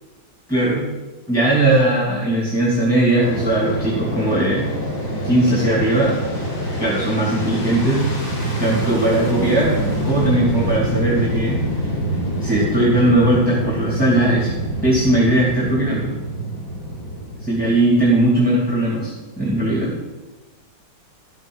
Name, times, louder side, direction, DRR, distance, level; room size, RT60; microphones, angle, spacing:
voice 1, 0.5-0.9 1.3-4.6 5.2-6.2 6.8-8.0 8.6-11.6 12.4-14.5 14.8-16.1 17.4-19.9, right 1 dB, 5° right, -6 dB, 2.5 m, -18 dB
Fixed-wing aircraft airplane, 3.2-18.4, right 1 dB, 70° left, 4.3 m, -25 dB
13.5 x 6.0 x 6.3 m, 1.2 s
omnidirectional pair, 2.1 m